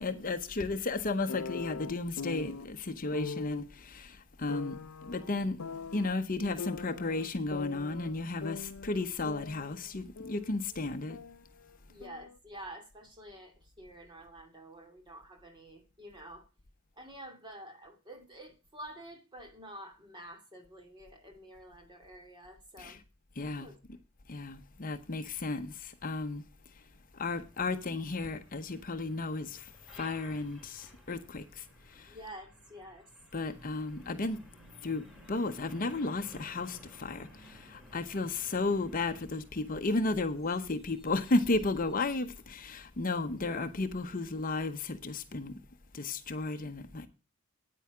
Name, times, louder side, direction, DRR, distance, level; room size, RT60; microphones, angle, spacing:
voice 1, 0.0-5.6 5.9-11.2 22.8-23.0 23.4-23.7 24.3-26.4 26.7-26.8 27.1-32.2 33.3-34.4 34.8-35.0 35.3-45.6 45.9-47.1, left 3 dB, 40° left, 0.8 m, -34 dB
sound 1, 1.3-2.6 3.1-3.6 4.5-6.1 6.6-8.1 8.4-10.6 10.8-12.4, left 5 dB, 85° left, 0.6 m, -42 dB
voice 2, 11.9-16.5 17.0-23.0 23.6-23.8 32.0-33.0, right 1 dB, 20° right, 2.6 m, -49 dB
Truck, 27.0-44.7, equal, ahead, 4.0 m, -57 dB
9.3 x 9.0 x 4.9 m
head